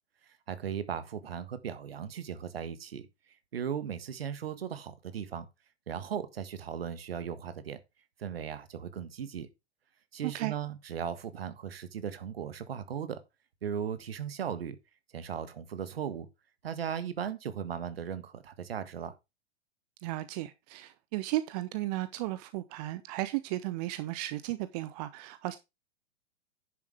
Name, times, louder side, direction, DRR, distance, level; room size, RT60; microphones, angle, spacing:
voice 1, 0.2-3.1 3.5-5.4 5.9-7.8 8.2-9.5 10.1-13.2 13.6-14.8 15.1-16.3 16.6-19.1, right 8 dB, 65° right, 1.6 m, -37 dB
voice 2, 10.2-10.5 20.0-25.6, right 16 dB, 40° right, 0.8 m, -35 dB
10.5 x 7.3 x 3.4 m
figure-of-eight pair, 100°, 32 cm